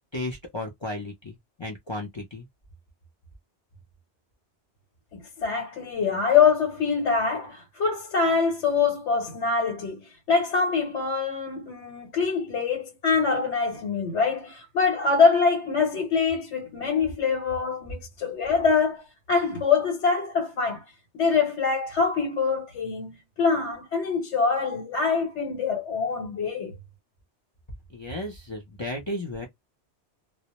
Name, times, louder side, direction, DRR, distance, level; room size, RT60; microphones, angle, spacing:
voice 1, 0.1-2.4 27.9-29.5, left 1 dB, 35° left, 0.5 m, -34 dB
voice 2, 5.1-20.8 21.1-26.7, left 5 dB, 85° left, 1.1 m, -24 dB
2.1 x 2.0 x 2.8 m
omnidirectional pair, 1.2 m